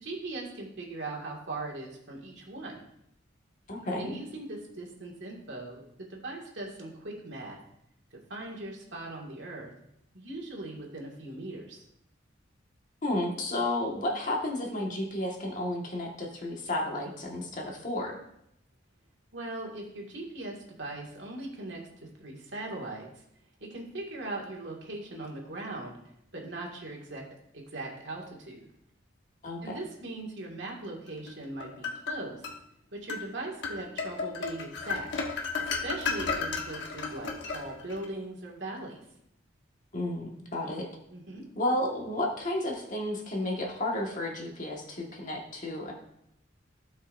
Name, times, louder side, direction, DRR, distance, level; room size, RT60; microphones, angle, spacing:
voice 1, 0.0-2.8 4.0-7.6 8.1-9.7 10.1-11.8 19.3-23.1 23.6-26.0 26.3-27.2 27.5-28.7 29.6-32.4 32.9-35.1 35.6-39.0 41.1-41.4, right 2 dB, 65° right, -1 dB, 2.0 m, -40 dB
voice 2, 3.7-4.1 13.0-18.2 29.4-29.8 39.9-40.9 41.5-45.9, left 1 dB, 40° left, -1 dB, 1.6 m, -32 dB
sound 1, 31.3-32.6 33.1-33.3 33.6-38.1, left 4 dB, 65° left, 1.3 m, -33 dB
16.0 x 5.6 x 2.6 m, 0.77 s
head